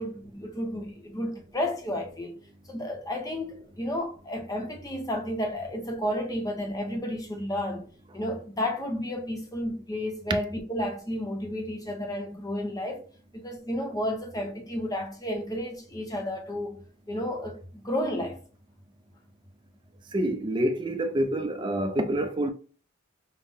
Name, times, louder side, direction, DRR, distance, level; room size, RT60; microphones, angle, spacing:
voice 1, 0.0-2.3 2.7-7.8 8.1-13.0 13.3-16.8 17.1-18.4, left 1 dB, 15° left, 0.6 m, -32 dB
voice 2, 20.1-22.5, right 1 dB, 20° right, 0.3 m, -27 dB
5.4 x 2.0 x 3.4 m
head